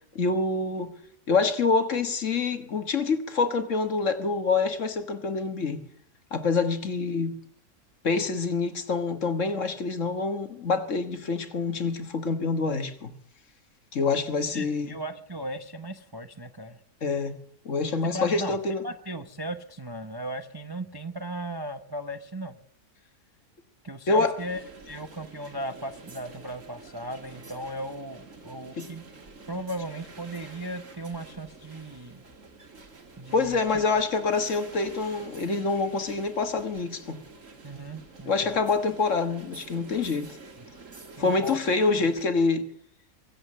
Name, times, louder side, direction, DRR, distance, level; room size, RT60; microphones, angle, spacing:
voice 1, 0.1-0.9 1.3-5.8 6.3-7.3 8.0-13.1 13.9-15.0 17.0-17.3 17.6-18.8 24.1-24.3 28.8-28.9 33.3-37.2 38.3-40.4 41.2-42.6, left 4 dB, 50° left, 1.7 m, -26 dB
voice 2, 14.5-16.8 18.0-18.6 18.8-22.6 23.8-29.0 29.5-32.2 33.2-33.8 37.6-38.6 41.2-41.6 42.0-42.1, right 1 dB, 20° right, 0.7 m, -36 dB
sound 1, 24.4-42.2, right 3 dB, 50° right, 2.5 m, -48 dB
23.0 x 8.1 x 6.5 m
omnidirectional pair, 1.7 m